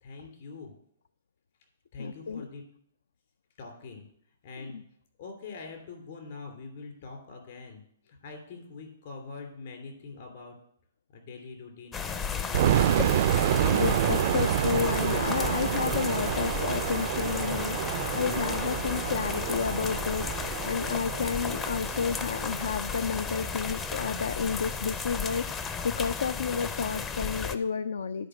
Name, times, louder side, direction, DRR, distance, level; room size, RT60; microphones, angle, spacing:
voice 1, 0.0-0.7 1.9-2.6 3.6-4.1 4.4-4.8 5.2-10.5 11.1-13.3, left 4 dB, 55° left, 3 dB, 2.8 m, -44 dB
voice 2, 2.0-2.5 4.7-4.8 13.7-28.3, left 6 dB, 80° left, 14 dB, 0.3 m, -31 dB
sound 1, 11.9-27.6, left 5 dB, 20° left, 0.5 m, -34 dB
sound 2, 12.5-23.4, right 11 dB, 55° right, 0.3 m, -29 dB
10.0 x 4.5 x 6.2 m, 0.66 s
hypercardioid pair, 135°, 0 cm